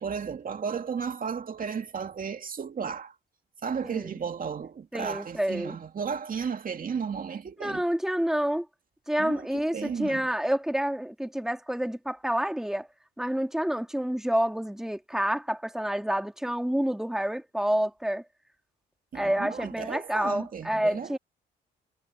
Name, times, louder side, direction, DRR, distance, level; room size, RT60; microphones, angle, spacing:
voice 1, 0.0-3.2 3.6-7.8 9.2-10.3 19.1-21.2, right 6 dB, 45° right, 2.4 m, -34 dB
voice 2, 3.8-4.1 4.9-5.8 7.6-8.7 9.1-12.9 13.2-18.2 19.1-21.2, right 1 dB, ahead, 2.5 m, -28 dB
cardioid pair, 90°, 20 cm